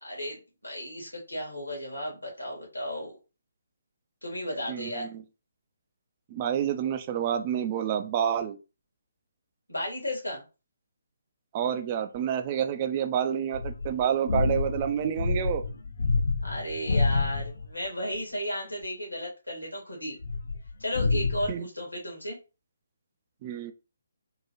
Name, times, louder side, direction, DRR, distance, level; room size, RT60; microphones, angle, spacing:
voice 1, 0.0-3.2 4.2-5.1 9.7-10.4 16.4-20.2 20.8-22.4, left 1 dB, 80° left, 1.7 m, -34 dB
voice 2, 4.7-5.2 6.3-8.6 11.5-15.6 21.5-21.7 23.4-23.7, right 9 dB, 25° right, 0.3 m, -28 dB
sound 1, 13.5-17.7 20.2-21.5, left 3 dB, 60° left, 0.4 m, -28 dB
3.6 x 2.3 x 3.0 m
figure-of-eight pair, 140°, 0 cm